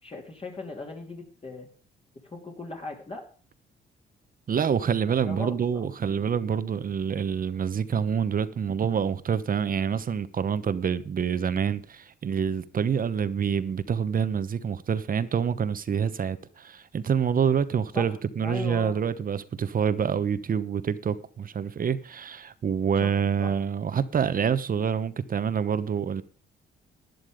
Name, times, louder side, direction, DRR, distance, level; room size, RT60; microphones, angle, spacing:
voice 1, 0.0-1.7 2.2-3.2 5.3-5.8 17.9-19.0 23.0-23.5, left 2 dB, 30° left, 2.9 m, -38 dB
voice 2, 4.5-26.2, right 7 dB, 45° right, 1.0 m, -27 dB
12.0 x 10.5 x 5.1 m
cardioid pair, 90°, 20 cm